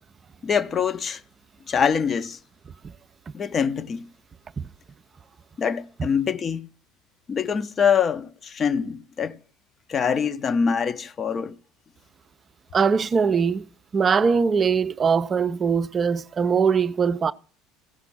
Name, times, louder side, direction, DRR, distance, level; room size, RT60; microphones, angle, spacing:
voice 1, 0.4-1.2 1.7-2.4 3.3-4.1 5.6-6.7 7.3-9.4 9.9-11.5, left 6 dB, 35° left, 0.7 m, -24 dB
voice 2, 12.7-13.6 13.9-17.3, right 6 dB, 30° right, 0.5 m, -21 dB
15.5 x 5.9 x 6.0 m
figure-of-eight pair, 65°, 0 cm